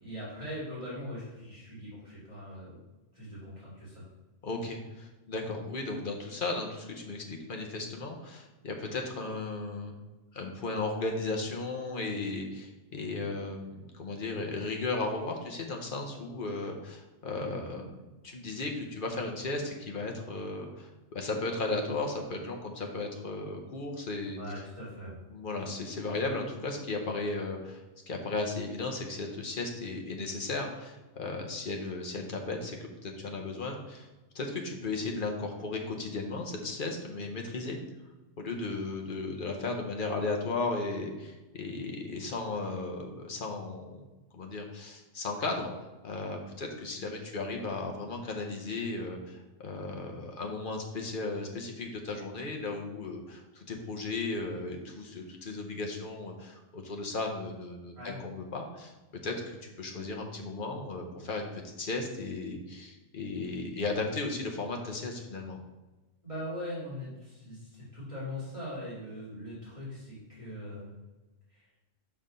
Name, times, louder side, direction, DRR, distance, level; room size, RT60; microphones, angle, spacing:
voice 1, 0.0-2.8 3.1-4.0 24.4-25.2 58.0-58.2 66.2-71.0 71.5-71.7, left 1 dB, 25° right, -9 dB, 2.5 m, -41 dB
voice 2, 4.4-9.9 10.3-18.0 18.2-24.4 25.3-34.1 34.3-37.8 38.4-44.0 44.3-45.7 46.0-58.9 59.2-65.6, left 3 dB, 45° left, 2 dB, 1.0 m, -35 dB
5.7 x 4.3 x 5.2 m, 1.1 s
omnidirectional pair, 1.3 m